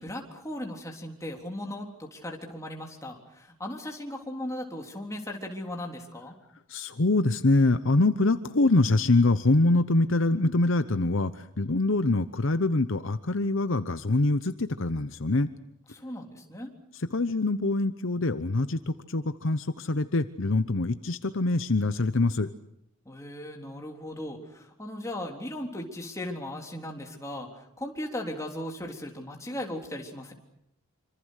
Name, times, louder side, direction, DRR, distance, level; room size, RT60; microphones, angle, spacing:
voice 1, 0.0-6.4 15.9-16.7 23.1-30.3, left 1 dB, 15° left, 1 dB, 3.7 m, -37 dB
voice 2, 6.7-15.5 16.9-22.5, left 2 dB, 60° left, 11 dB, 0.9 m, -24 dB
27.0 x 26.0 x 6.5 m, 0.78 s
head